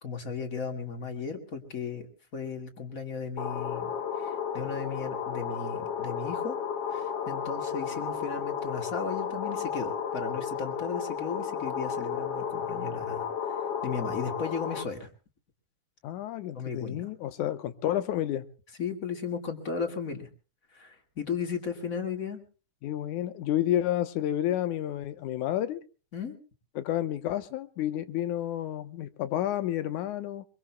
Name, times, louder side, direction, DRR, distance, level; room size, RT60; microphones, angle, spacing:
voice 1, 0.0-2.1 2.3-3.9 4.2-6.6 6.9-13.6 13.8-15.1 16.5-17.1 18.8-20.3 20.7-22.4 26.1-26.4, left 5 dB, 30° left, 1.8 m, -35 dB
sound 1, 3.4-14.8, left 7 dB, 60° left, 2.1 m, -33 dB
voice 2, 16.0-18.5 22.8-25.8 26.8-30.5, left 12 dB, 80° left, 2.3 m, -30 dB
23.5 x 23.5 x 2.2 m
omnidirectional pair, 3.5 m